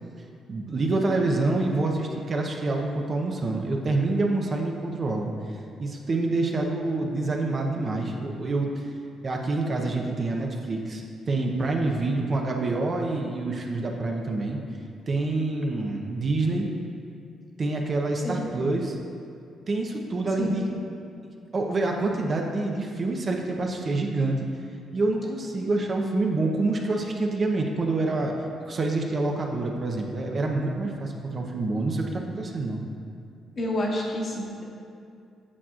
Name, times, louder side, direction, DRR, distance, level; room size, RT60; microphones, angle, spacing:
voice 1, 0.5-5.5 5.8-8.9 9.2-14.6 15.1-16.7 17.6-19.0 19.7-20.7 21.5-24.5 24.9-28.3 28.6-32.8, right 2 dB, 40° right, 1 dB, 0.8 m, -27 dB
voice 2, 20.4-20.7 33.6-34.6, left 1 dB, 40° left, -2 dB, 1.4 m, -29 dB
8.5 x 7.2 x 2.5 m, 2.5 s
cardioid pair, 90°, 0 cm